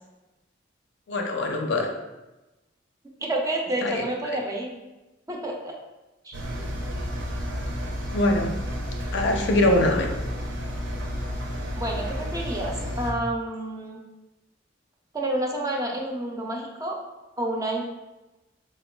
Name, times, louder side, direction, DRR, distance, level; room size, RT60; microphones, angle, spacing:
voice 1, 1.1-1.9 3.8-4.0 4.3-4.4 8.1-8.5 9.1-10.1, left 1 dB, 65° left, 3 dB, 0.4 m, -23 dB
voice 2, 3.2-4.7 5.3-5.7 6.2-6.4 11.7-14.0 15.1-17.0 17.4-17.8, right 1 dB, 20° right, 0 dB, 0.3 m, -29 dB
Engine, 6.3-13.1, equal, 70° right, 0.5 m, -31 dB
4.4 x 2.2 x 2.2 m, 1.0 s
head